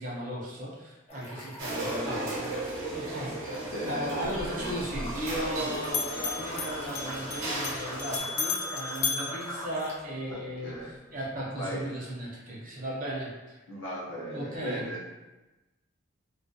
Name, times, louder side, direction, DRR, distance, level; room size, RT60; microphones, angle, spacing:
voice 1, 0.0-2.6 2.9-3.5 3.9-13.6 14.3-14.9, right 1 dB, 40° right, -4 dB, 0.6 m, -36 dB
sound 1, 1.1-2.1 2.4-10.0, equal, 30° left, 0.5 m, -42 dB
sound 2, 1.6-8.2, right 1 dB, 90° right, 0.7 m, -36 dB
voice 2, 3.7-4.7 5.6-5.7 10.3-10.9 11.6-11.8 13.7-15.0, equal, 70° left, -5 dB, 0.7 m, -37 dB
Bell, 4.2-5.6 5.8-10.3, left 5 dB, 85° left, 0.3 m, -35 dB
2.3 x 2.1 x 2.6 m, 1.1 s
head